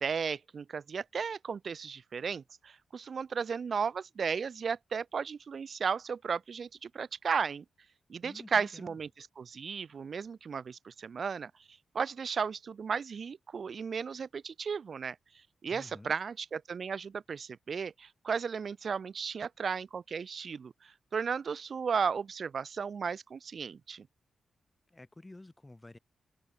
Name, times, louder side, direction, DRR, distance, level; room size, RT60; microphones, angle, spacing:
voice 1, 0.0-7.6 8.1-15.2 15.6-24.1, right 6 dB, 50° right, 0.3 m, -35 dB
voice 2, 8.2-9.0 15.7-16.1 24.9-26.0, left 2 dB, 15° left, 3.2 m, -51 dB
open air
wide cardioid pair, 135°, 0 cm